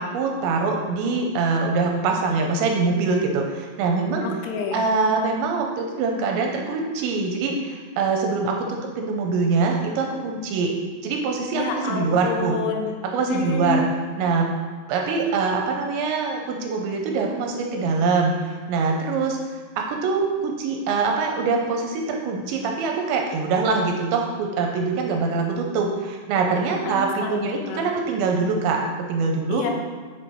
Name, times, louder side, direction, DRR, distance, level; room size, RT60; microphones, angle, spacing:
voice 1, 0.0-4.3 4.7-10.7 11.0-12.6 13.0-13.9 14.2-14.5 14.9-19.4 19.8-29.6, right 4 dB, 80° right, 2 dB, 2.8 m, -24 dB
voice 2, 4.2-4.8 11.6-12.9 13.3-13.9 26.8-27.9 29.5-29.7, left 4 dB, 85° left, 1 dB, 3.5 m, -28 dB
7.5 x 6.3 x 4.5 m, 1.4 s
omnidirectional pair, 5.6 m